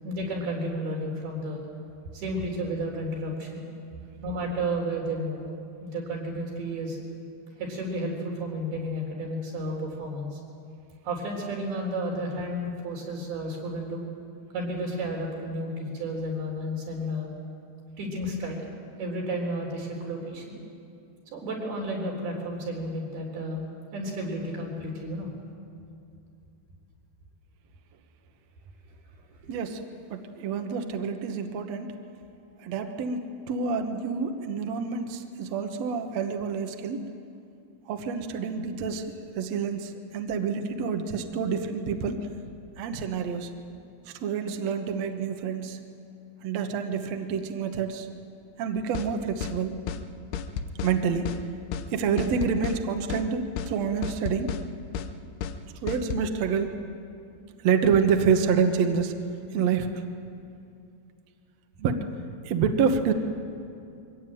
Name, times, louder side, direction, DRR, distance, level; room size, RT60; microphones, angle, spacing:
voice 1, 0.0-1.7 2.1-3.6 4.2-5.5 5.8-7.0 7.6-10.4 11.0-14.0 14.5-17.3 18.0-18.7 19.0-20.6 21.3-23.7 23.9-25.3 29.6-29.7, equal, 80° right, -1 dB, 6.0 m, -32 dB
voice 2, 29.5-29.8 30.1-31.9 32.6-37.0 37.9-42.3 42.8-43.5 44.2-45.8 46.4-48.1 48.6-49.7 50.8-51.3 51.9-54.5 55.8-56.7 57.6-59.1 59.5-59.9 61.8-62.0 62.4-63.1, right 6 dB, 60° right, 5 dB, 1.9 m, -27 dB
sound 1, 48.9-49.1 49.4-49.6 49.9-50.0 50.3-51.0 51.3-51.4 51.7-51.9 52.2-52.8 53.1-53.3 53.6-53.7 54.0-54.6 54.9-55.1 55.4-55.6 55.9-56.3, left 7 dB, 90° left, 2.9 m, -32 dB
23.5 x 18.0 x 9.2 m, 2.5 s
omnidirectional pair, 4.4 m